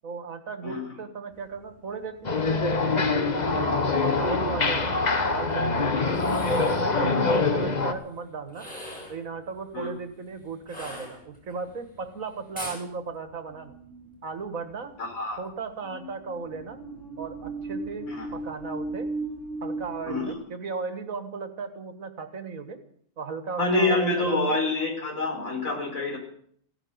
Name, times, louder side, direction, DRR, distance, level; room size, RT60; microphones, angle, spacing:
voice 1, 0.0-6.0 6.3-8.7 9.1-13.8 14.2-15.0 15.4-16.8 17.2-19.1 19.6-22.8 23.2-24.6, right 4 dB, 80° right, 9 dB, 2.0 m, -36 dB
sound 1, 1.3-20.3, right 2 dB, 60° left, 8.5 m, -40 dB
sound 2, 2.2-7.9, left 3 dB, 35° left, 1.2 m, -24 dB
sound 3, 6.1-6.9 8.5-9.2 10.7-11.6 12.5-12.8, equal, 5° left, 7.0 m, -40 dB
voice 2, 6.9-7.2 9.7-9.9 15.0-15.4 18.1-18.3 20.1-20.3 23.6-26.2, left 2 dB, 80° left, 1 dB, 4.9 m, -27 dB
16.0 x 11.0 x 8.0 m, 0.62 s
omnidirectional pair, 1.4 m